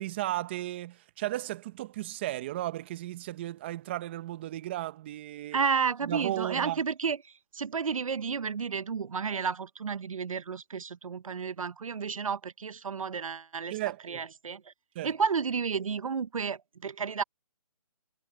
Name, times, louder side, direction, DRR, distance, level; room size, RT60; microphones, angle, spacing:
voice 1, 0.0-5.6 6.0-6.8 13.7-14.2 14.9-15.1, right 15 dB, 20° right, 0.9 m, -35 dB
voice 2, 5.5-7.2 7.5-13.8 14.1-14.7 15.0-17.2, right 6 dB, 70° right, 0.8 m, -31 dB
hypercardioid pair, 165°, 18 cm